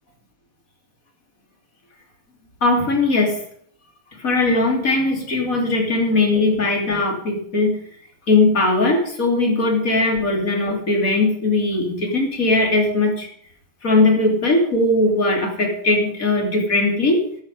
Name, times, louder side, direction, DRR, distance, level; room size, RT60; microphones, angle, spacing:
voice 1, 2.6-3.4 4.2-7.8 8.3-13.3 13.8-17.2, left 2 dB, 25° left, 1 dB, 3.1 m, -19 dB
13.0 x 12.0 x 5.5 m, 0.62 s
omnidirectional pair, 3.9 m